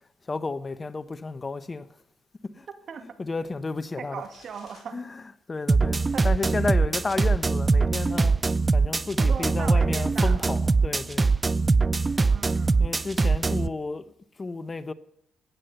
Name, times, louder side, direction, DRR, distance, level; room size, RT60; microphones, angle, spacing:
voice 1, 0.3-1.8 2.4-2.7 3.2-4.2 4.9-5.2 5.5-8.3 8.7-11.3 12.8-14.1 14.4-14.9, left 3 dB, 30° left, 0.8 m, -32 dB
voice 2, 4.0-5.0 6.1-6.3 9.2-10.5 12.3-12.8 13.4-13.6, right 6 dB, 60° right, 2.2 m, -38 dB
sound 1, 4.2-4.9, left 4 dB, 45° left, 5.6 m, -54 dB
sound 2, 5.7-13.7, right 3 dB, 25° right, 0.5 m, -22 dB
15.5 x 9.7 x 6.6 m
cardioid pair, 90°, 0 cm